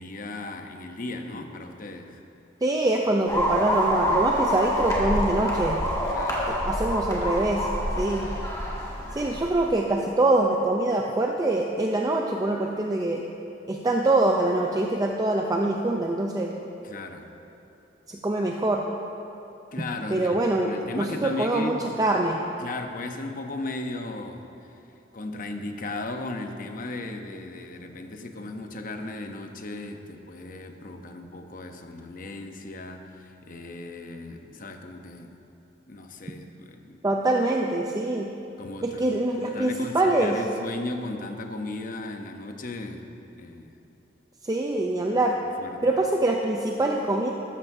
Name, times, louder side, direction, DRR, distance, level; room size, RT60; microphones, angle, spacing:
voice 1, 0.0-2.2 6.1-6.6 8.9-9.4 16.8-17.3 19.7-21.9 22.6-24.5 25.1-35.3 35.9-37.0 38.6-39.1 39.4-43.1 43.4-43.7 45.6-45.8, left 2 dB, 50° left, 5 dB, 0.8 m, -36 dB
voice 2, 2.6-5.8 6.5-7.7 8.0-8.3 9.1-13.2 13.7-16.5 18.1-18.8 20.1-20.7 21.0-22.4 37.0-38.3 38.8-40.4 44.4-45.4 45.8-47.3, right 2 dB, 20° right, 0 dB, 0.5 m, -24 dB
sound 1, 3.3-9.6, equal, 20° left, 1.9 m, -26 dB
13.5 x 13.0 x 2.7 m, 2.9 s
head